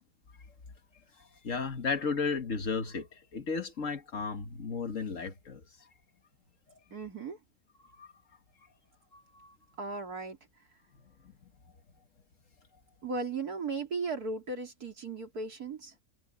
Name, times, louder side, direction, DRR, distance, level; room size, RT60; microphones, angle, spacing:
voice 1, 1.4-5.6 8.0-8.1 9.1-9.5, left 5 dB, 55° left, 1.9 m, -34 dB
voice 2, 6.9-7.4 9.8-10.4 13.0-15.9, right 4 dB, 80° right, 3.9 m, -36 dB
omnidirectional pair, 1.6 m